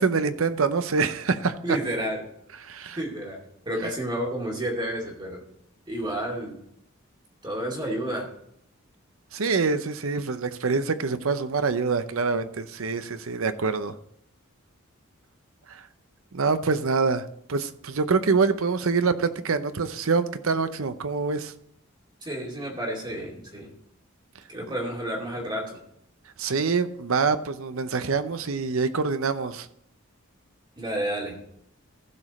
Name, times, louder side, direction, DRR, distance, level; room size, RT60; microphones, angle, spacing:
voice 1, 0.0-1.5 2.6-3.0 3.8-3.9 9.3-13.9 15.7-15.8 16.3-21.5 24.7-24.8 26.4-29.7, right 4 dB, 75° right, 11 dB, 0.7 m, -25 dB
voice 2, 1.6-2.3 3.0-3.4 3.7-5.4 5.9-6.6 7.4-8.3 22.2-23.7 24.5-25.8 30.8-31.4, right 1 dB, 20° right, -2 dB, 2.5 m, -30 dB
15.0 x 5.1 x 4.2 m, 0.73 s
head